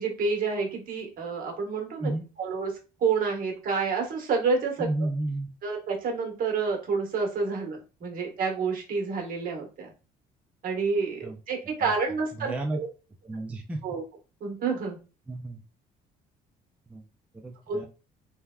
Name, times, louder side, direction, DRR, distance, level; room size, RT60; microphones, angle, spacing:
voice 1, 0.0-2.1 2.4-2.7 3.0-4.9 5.6-9.9 10.6-12.9 13.8-14.0 14.4-15.0 17.7-17.8, right 4 dB, 55° right, 1 dB, 1.0 m, -29 dB
voice 2, 4.8-5.5 11.2-11.4 11.8-11.9 12.4-12.8 13.2-13.8 15.3-15.6 16.9-17.0 17.4-17.9, right 2 dB, 10° right, 2 dB, 0.3 m, -32 dB
3.3 x 2.1 x 2.3 m, 0.33 s
cardioid pair, 110°, 17 cm